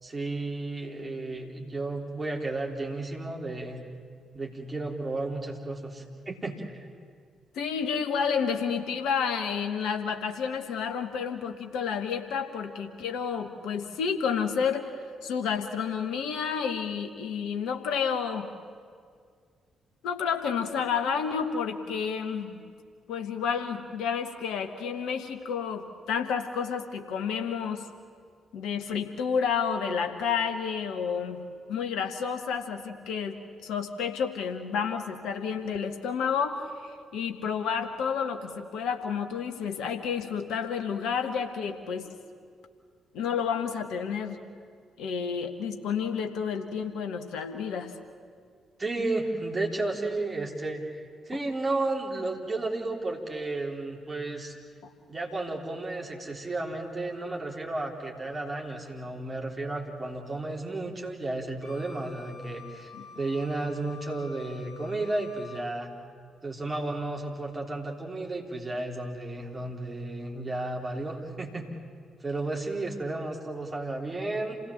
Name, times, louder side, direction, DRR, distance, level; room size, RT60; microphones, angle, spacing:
voice 1, 0.0-3.8 4.3-6.9 48.8-54.6 55.1-65.9 66.4-71.7 72.2-74.6, right 2 dB, 25° right, 0 dB, 3.6 m, -33 dB
voice 2, 7.5-14.9 15.2-18.5 20.0-22.6 23.1-27.8 28.5-31.4 31.7-42.1 43.1-44.4 45.0-47.9 62.9-63.1, left 6 dB, 60° left, 6 dB, 1.4 m, -30 dB
Wind instrument woodwind instrument, 61.6-65.7, left 6 dB, 40° left, 3.0 m, -49 dB
28.0 x 17.0 x 7.4 m, 2.1 s
figure-of-eight pair, 40°, 0 cm